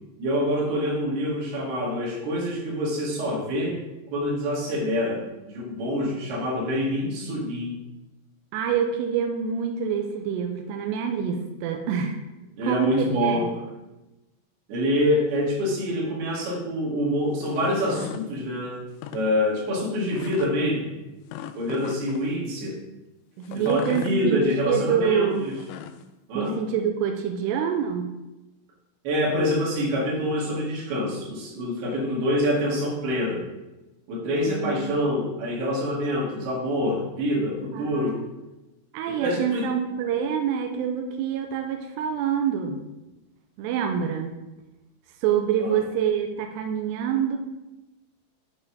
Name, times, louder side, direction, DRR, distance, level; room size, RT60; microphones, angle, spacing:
voice 1, 0.2-3.8 4.1-7.8 12.6-13.5 14.7-18.8 19.1-20.9 21.6-22.8 23.5-25.2 26.3-26.6 29.0-33.4 34.1-38.2 39.1-39.7, equal, 60° right, -3 dB, 3.5 m, -26 dB
voice 2, 8.5-12.2 12.6-13.5 23.4-25.5 26.3-28.1 34.5-35.0 37.7-38.1 38.9-42.8 43.6-44.4 45.2-47.4, right 7 dB, 85° right, 4 dB, 2.4 m, -26 dB
sound 1, 17.3-18.3 18.9-19.2 20.1-20.5 21.3-22.3 23.4-24.2 25.4-26.0, left 10 dB, 85° left, 3.0 m, -38 dB
9.3 x 4.2 x 5.5 m, 1.0 s
omnidirectional pair, 5.6 m